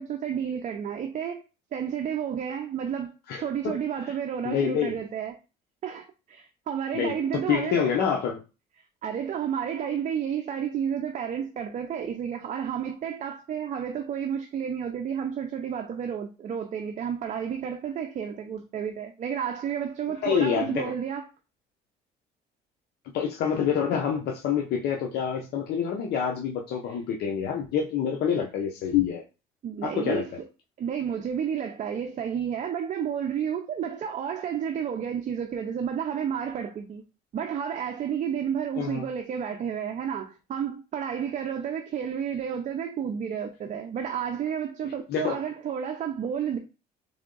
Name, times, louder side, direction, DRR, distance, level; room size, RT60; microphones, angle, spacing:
voice 1, 0.0-1.4 1.7-5.4 5.8-7.9 9.0-21.3 29.6-30.3 30.8-37.0 37.3-46.6, right 8 dB, 45° right, 0.6 m, -31 dB
voice 2, 3.3-4.1 4.4-5.0 6.9-8.4 20.2-20.9 23.1-29.2 29.8-30.3 38.8-39.0 44.8-45.4, left 7 dB, 70° left, 0.8 m, -27 dB
3.6 x 3.5 x 3.8 m
cardioid pair, 110°, 17 cm